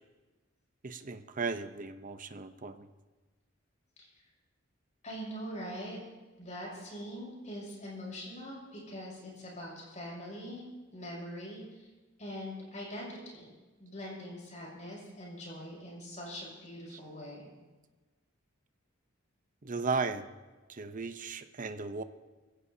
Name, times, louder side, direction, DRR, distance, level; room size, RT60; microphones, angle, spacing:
voice 1, 0.8-2.9 16.9-17.0 19.6-20.3 20.7-22.0, right 4 dB, 40° right, 10 dB, 0.8 m, -36 dB
voice 2, 5.0-6.0 6.4-10.6 10.9-11.9 12.2-13.5 13.8-17.5, equal, 40° left, -3 dB, 6.8 m, -43 dB
23.5 x 16.5 x 2.8 m, 1.2 s
head